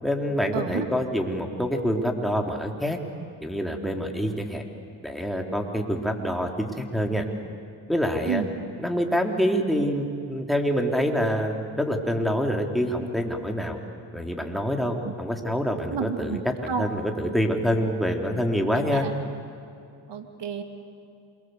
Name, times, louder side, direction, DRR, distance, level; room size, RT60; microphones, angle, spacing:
voice 1, 0.0-3.0 3.4-4.6 5.0-7.2 7.9-8.4 8.8-13.8 14.1-19.1, equal, ahead, 2 dB, 4.0 m, -26 dB
voice 2, 0.5-0.9 8.3-8.5 15.0-15.1 15.9-16.9 18.9-19.1 20.1-20.6, right 7 dB, 55° right, 6 dB, 2.9 m, -30 dB
27.5 x 23.5 x 8.3 m, 2.5 s
supercardioid pair, 65°, 49 cm